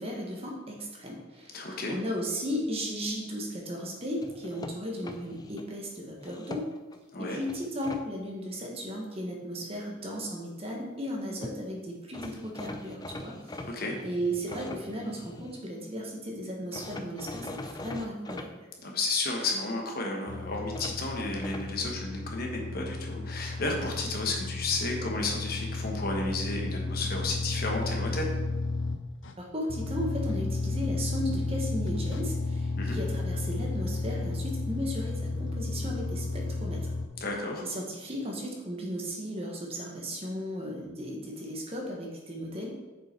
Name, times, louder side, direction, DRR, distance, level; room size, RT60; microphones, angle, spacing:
voice 1, 0.0-6.7 7.2-13.6 14.0-18.5 29.4-36.9 37.6-42.8, equal, 30° right, -1 dB, 1.3 m, -35 dB
voice 2, 1.5-2.0 7.1-7.4 13.6-14.0 18.8-28.3 32.8-33.0 37.2-37.6, left 2 dB, 50° left, 1 dB, 1.2 m, -32 dB
sound 1, 4.2-5.7 6.2-7.0 7.5-8.0 11.1-11.2 11.4-11.6 12.1-15.6 16.7-18.5 20.7-21.7, left 2 dB, 20° left, 0.4 m, -42 dB
sound 2, 20.3-29.3 29.7-37.1, left 3 dB, 70° left, 0.6 m, -33 dB
6.9 x 5.5 x 4.5 m, 1.2 s
head